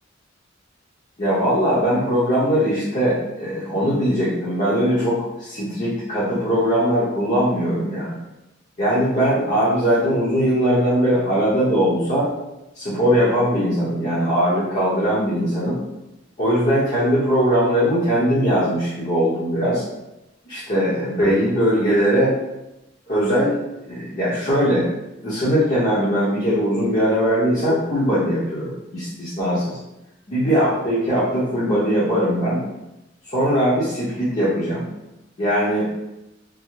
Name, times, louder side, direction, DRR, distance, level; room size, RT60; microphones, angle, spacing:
voice 1, 1.2-8.2 8.8-12.3 12.7-15.8 16.4-19.8 20.4-22.3 23.1-23.5 23.9-24.9 25.2-29.8 30.3-32.6 33.3-34.8 35.4-35.9, equal, 40° left, -10 dB, 0.9 m, -20 dB
3.7 x 2.1 x 3.1 m, 0.92 s
head